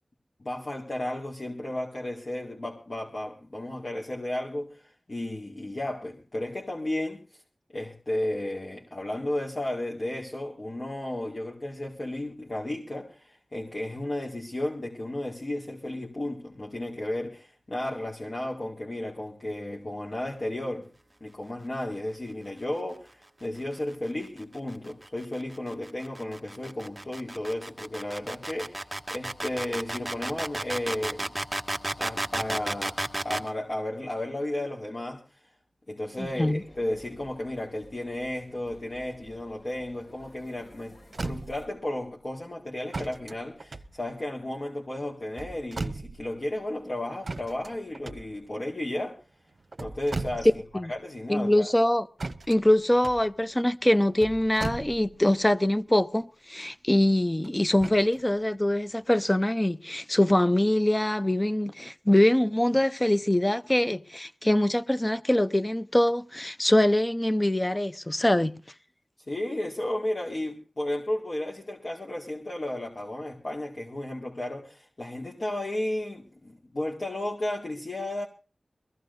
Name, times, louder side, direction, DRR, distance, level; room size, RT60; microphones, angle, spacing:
voice 1, 0.4-7.4 7.7-20.9 21.2-31.3 32.0-35.5 35.9-49.2 49.8-50.6 50.9-51.7 69.3-78.3, left 1 dB, 50° left, 2.1 m, -33 dB
sound 1, 24.2-33.5, right 1 dB, 20° right, 1.5 m, -33 dB
sound 2, 36.2-41.7, equal, 70° left, 7.2 m, -53 dB
voice 2, 36.2-36.6 50.7-50.9 51.3-52.1 52.5-68.6, left 1 dB, 20° left, 0.7 m, -23 dB
sound 3, 40.6-40.7 41.0-41.8 42.9-44.5 45.2-46.4 47.2-48.7 49.5-50.8 51.1-51.2 52.2-55.4 57.4-58.2 58.9-59.0, right 3 dB, 65° right, 0.8 m, -37 dB
22.5 x 15.5 x 2.7 m
wide cardioid pair, 55°, 0 cm